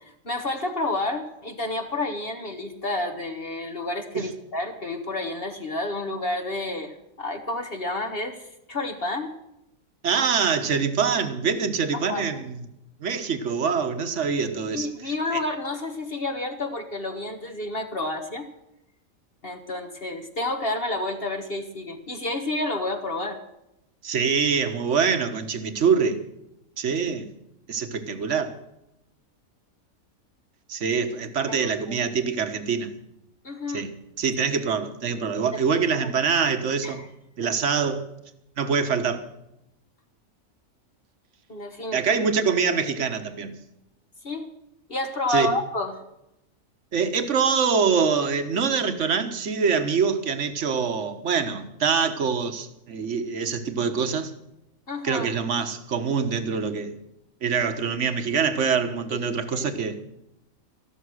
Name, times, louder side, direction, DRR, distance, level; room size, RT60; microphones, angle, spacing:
voice 1, 0.2-9.3 11.9-12.3 14.7-18.5 19.4-23.4 31.5-31.6 31.9-32.0 33.4-33.8 35.5-35.6 36.0-36.2 36.8-37.1 37.4-37.5 41.5-42.2 44.2-44.5 44.9-45.9 54.9-55.3 59.1-59.7, left 2 dB, 45° left, 1.5 m, -30 dB
voice 2, 10.0-12.6 13.0-15.4 24.0-26.2 26.8-27.3 27.7-28.6 30.7-32.9 33.7-37.0 37.4-38.1 38.6-39.3 41.9-43.5 45.3-45.5 46.9-54.3 55.0-56.9 57.4-60.0, right 6 dB, 60° right, 1.5 m, -25 dB
14.0 x 12.5 x 6.3 m
omnidirectional pair, 1.4 m